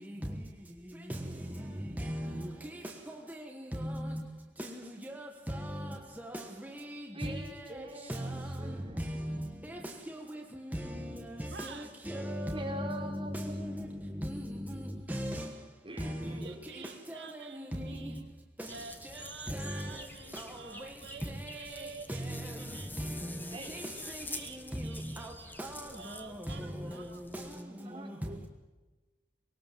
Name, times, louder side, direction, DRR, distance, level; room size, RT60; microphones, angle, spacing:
voice 1, 2.0-2.5 3.1-4.2 4.6-7.6 8.1-9.4 9.6-9.8 10.1-10.4 10.7-14.8 15.1-15.5 16.0-16.4 17.1-18.1 18.6-18.7 19.1-19.9 20.3-20.6 21.4-21.8 22.1-22.5 23.0-23.8 24.1-24.2 24.5-25.3 25.6-27.1 27.3-27.4 28.0-28.1, equal, 10° right, 1.3 m, -38 dB
voice 2, 7.1-9.2 12.1-12.3 12.5-13.6 15.8-16.9 23.5-24.1 27.8-28.5, right 1 dB, 30° right, 4.0 m, -45 dB
voice 3, 11.5-11.9 16.4-18.3 18.7-22.3 22.6-22.9 24.0-25.5 25.9-27.2, right 5 dB, 70° right, 1.3 m, -49 dB
sound 1, 18.6-27.6, left 2 dB, 10° left, 1.3 m, -47 dB
22.5 x 18.5 x 7.4 m
head